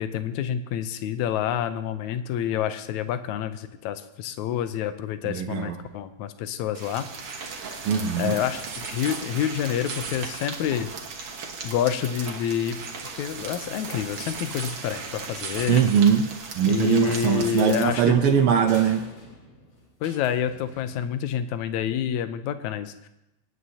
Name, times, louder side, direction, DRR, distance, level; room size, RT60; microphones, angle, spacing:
voice 1, 0.0-7.9 8.2-10.9 11.6-12.8 13.1-15.8 16.7-18.2 20.0-23.1, left 9 dB, 80° left, 11 dB, 2.1 m, -28 dB
voice 2, 5.2-5.8 7.8-8.4 15.7-16.3 16.5-19.0, right 7 dB, 75° right, 6 dB, 1.3 m, -21 dB
sound 1, 6.7-17.8, right 5 dB, 55° right, 2.1 m, -36 dB
sound 2, 17.8-21.5, left 1 dB, 50° left, 4.5 m, -48 dB
27.0 x 9.5 x 2.8 m, 0.91 s
omnidirectional pair, 3.4 m